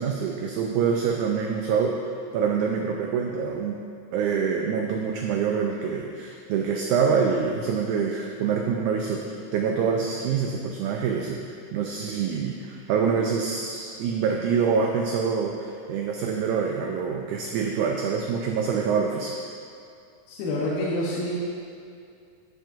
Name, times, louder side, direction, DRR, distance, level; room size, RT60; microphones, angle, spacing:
voice 1, 0.0-2.0 2.3-3.8 4.1-11.4 11.7-19.3, right 6 dB, 80° right, 1 dB, 1.8 m, -25 dB
voice 2, 20.3-21.4, left 1 dB, 90° left, -5 dB, 2.7 m, -27 dB
11.0 x 7.2 x 2.5 m, 2.4 s
omnidirectional pair, 4.0 m